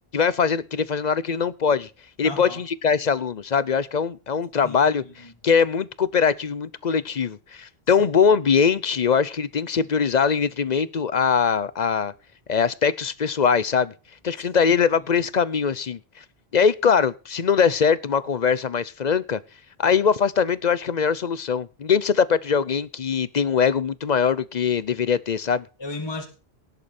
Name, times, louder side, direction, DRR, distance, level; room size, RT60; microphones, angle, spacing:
voice 1, 0.1-1.9 2.2-5.0 5.4-12.1 12.5-13.9 14.2-16.0 16.5-19.4 19.8-25.7, left 6 dB, 45° left, 18 dB, 0.8 m, -22 dB
voice 2, 2.2-2.6 4.6-5.3 7.9-8.0 8.3-8.4 15.0-15.1 25.8-26.3, left 2 dB, 25° left, 3 dB, 2.0 m, -36 dB
18.0 x 8.1 x 4.3 m, 0.33 s
omnidirectional pair, 1.0 m